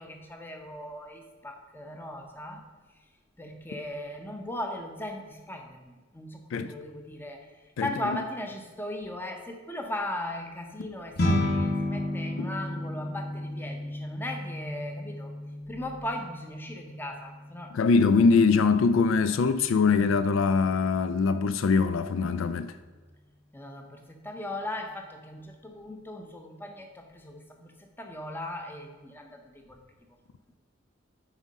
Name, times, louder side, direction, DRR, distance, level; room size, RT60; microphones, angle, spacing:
voice 1, 0.0-2.6 3.4-7.4 7.8-15.3 15.7-18.0 23.5-29.8, left 1 dB, 10° left, 0.6 m, -38 dB
voice 2, 7.8-8.2 12.4-12.5 17.7-22.7, left 4 dB, 70° left, 0.3 m, -23 dB
sound 1, 11.2-20.6, left 1 dB, 45° left, 1.3 m, -33 dB
9.0 x 3.6 x 5.3 m
head